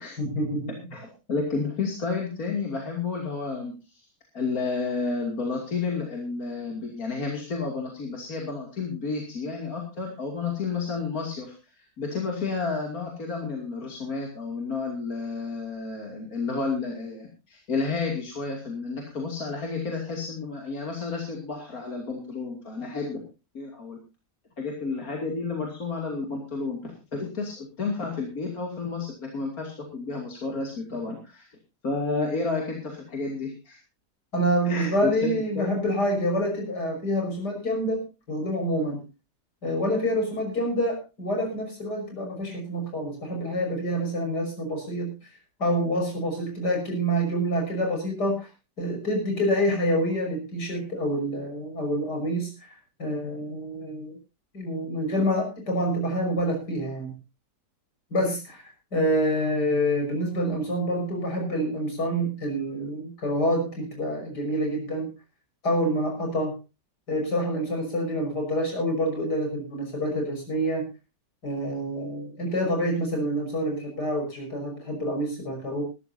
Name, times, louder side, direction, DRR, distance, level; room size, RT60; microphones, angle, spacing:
voice 1, 0.2-0.7 34.3-39.0 39.6-45.1 45.6-48.5 48.8-54.2 54.5-57.1 58.1-65.1 65.6-66.5 67.1-70.9 71.4-75.8, equal, 75° left, 2 dB, 6.4 m, -27 dB
voice 2, 0.9-4.0 4.3-23.2 23.5-24.0 24.6-31.5 31.8-33.8 34.6-35.8, left 4 dB, 55° left, 0 dB, 3.2 m, -31 dB
20.5 x 13.5 x 2.7 m, 0.30 s
omnidirectional pair, 1.8 m